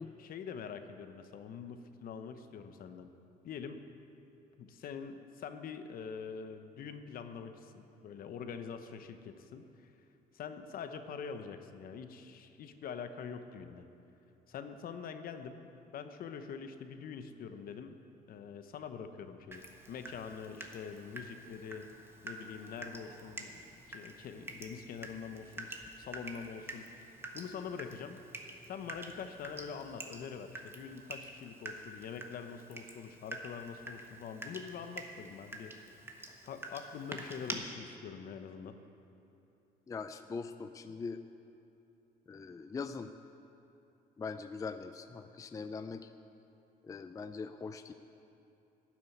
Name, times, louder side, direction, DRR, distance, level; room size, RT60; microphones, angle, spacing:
voice 1, 0.2-3.1 3.4-3.8 4.6-9.9 10.3-13.9 14.5-18.0 18.3-21.9 22.2-26.9 27.3-28.2 28.6-35.7 36.4-38.8, left 6 dB, 60° left, 9 dB, 0.9 m, -45 dB
Water tap faucet / Drip, 19.5-37.5, right 2 dB, 15° right, 1.3 m, -47 dB
voice 2, 39.9-41.2 42.3-43.1 44.2-46.1 46.9-47.9, left 4 dB, 20° left, 9 dB, 0.4 m, -41 dB
12.5 x 7.5 x 9.3 m, 2.9 s
cardioid pair, 110°, 17 cm